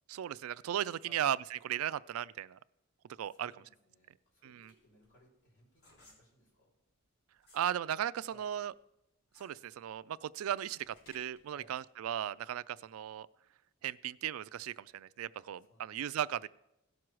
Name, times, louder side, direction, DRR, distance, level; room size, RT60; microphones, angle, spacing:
voice 1, 0.1-2.6 3.2-3.5 4.4-4.7 7.5-8.7 9.4-13.3 13.8-16.5, right 10 dB, 85° right, 0.3 m, -36 dB
voice 2, 3.1-6.7 8.3-8.5 11.5-11.8 15.4-16.3, left 1 dB, 55° left, 4.6 m, -64 dB
Rubber Mask Stretch Wet, 4.1-7.7 8.1-11.5, left 2 dB, 85° left, 3.7 m, -64 dB
17.0 x 6.2 x 4.6 m
head